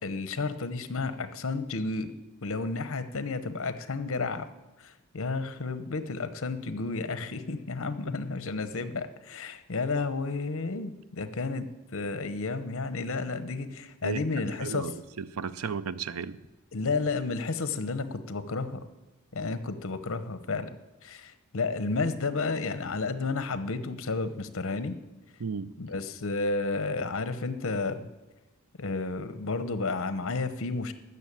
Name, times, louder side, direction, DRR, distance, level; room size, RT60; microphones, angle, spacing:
voice 1, 0.0-2.1 2.4-4.5 4.8-11.7 11.9-14.8 16.7-18.9 19.3-20.8 21.0-24.9 25.8-28.1 28.8-30.9, left 3 dB, 65° left, 12 dB, 0.9 m, -32 dB
voice 2, 14.6-16.4 25.4-25.7, right 6 dB, 85° right, 15 dB, 0.6 m, -34 dB
13.5 x 6.7 x 8.6 m, 1.1 s
head